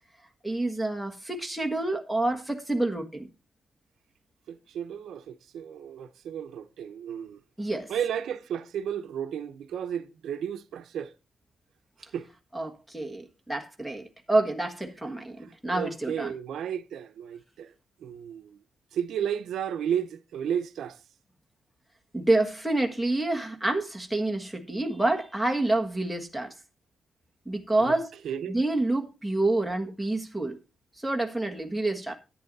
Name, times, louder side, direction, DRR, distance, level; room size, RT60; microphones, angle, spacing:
voice 1, 0.4-3.3 7.6-7.9 12.5-16.3 22.1-26.5 27.4-28.1 28.5-30.6 31.0-32.1, right 2 dB, ahead, 1.6 m, -28 dB
voice 2, 4.5-7.4 7.9-11.1 12.1-12.3 15.4-17.7 18.0-18.6 18.9-21.0 27.8-28.0 28.2-28.6, right 9 dB, 85° right, 0.8 m, -33 dB
10.5 x 9.5 x 4.1 m
wide cardioid pair, 175°, 0 cm